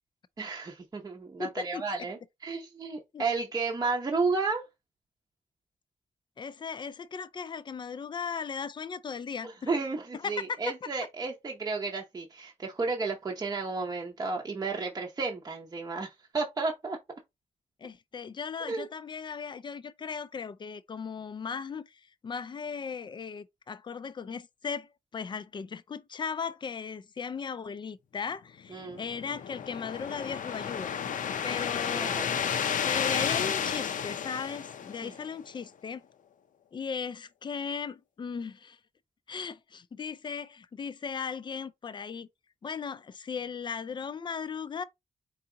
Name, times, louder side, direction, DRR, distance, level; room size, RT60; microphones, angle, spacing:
voice 1, 0.4-4.7 9.4-17.0 18.7-18.9 28.7-29.0 31.9-32.4 35.0-35.1, right 4 dB, 25° right, 0.7 m, -32 dB
voice 2, 1.4-2.1 3.1-3.2 6.4-9.7 10.1-10.6 17.8-31.0 31.4-32.2 32.8-36.0 36.7-38.8 39.3-42.3 42.6-44.8, left 6 dB, 35° left, 0.4 m, -37 dB
sound 1, 28.8-35.4, left 8 dB, 85° left, 0.6 m, -32 dB
4.6 x 2.8 x 3.8 m
wide cardioid pair, 170°, 13 cm